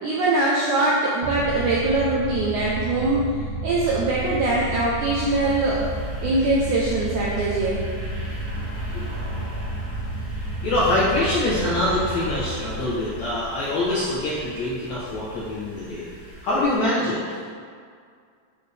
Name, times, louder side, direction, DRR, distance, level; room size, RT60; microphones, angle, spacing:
voice 1, 0.0-3.2 3.6-5.8 6.2-7.9, right 2 dB, 90° right, -5 dB, 1.7 m, -22 dB
sound 1, 1.2-14.1, right 1 dB, 70° right, 2.8 m, -31 dB
sound 2, 5.2-16.8, right 1 dB, 40° right, 2.4 m, -40 dB
voice 2, 10.6-16.1 16.4-17.2, left 1 dB, 70° left, -8 dB, 1.8 m, -24 dB
8.9 x 7.4 x 3.4 m, 2.1 s
omnidirectional pair, 4.7 m